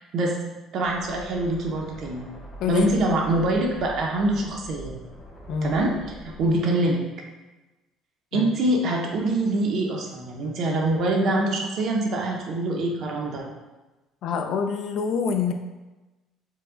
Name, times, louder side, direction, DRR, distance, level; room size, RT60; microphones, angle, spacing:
voice 1, 0.7-2.2 2.7-5.0 5.6-7.0 8.3-13.5, right 2 dB, 50° right, 0 dB, 0.6 m, -24 dB
sound 1, 0.8-6.5, right 1 dB, 20° left, 0.9 m, -43 dB
voice 2, 5.5-5.8 8.3-8.5 14.2-15.5, left 6 dB, 60° left, 6 dB, 0.3 m, -26 dB
4.6 x 2.1 x 3.7 m, 1.1 s
cardioid pair, 155°, 0 cm